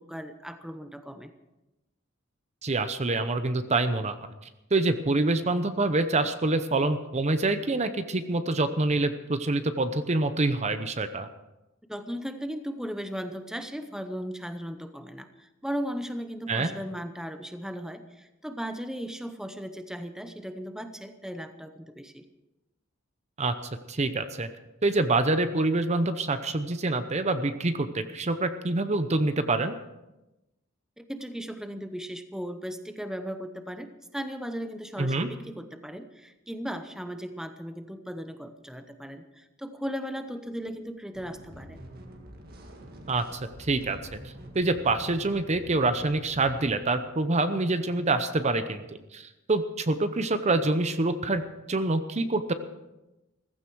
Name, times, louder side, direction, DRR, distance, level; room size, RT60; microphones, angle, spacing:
voice 1, 0.0-1.3 11.9-22.3 31.0-41.8, equal, 5° right, 8 dB, 0.8 m, -37 dB
voice 2, 2.6-4.2 4.7-11.3 16.5-16.7 23.4-23.5 23.9-24.5 24.8-29.7 35.0-35.3 43.1-44.2 44.5-48.8 49.1-51.4 51.7-52.5, right 2 dB, 35° right, 10 dB, 0.8 m, -26 dB
sound 1, 41.1-46.8, right 1 dB, 50° right, 2.0 m, -46 dB
15.5 x 15.0 x 4.7 m, 0.99 s
head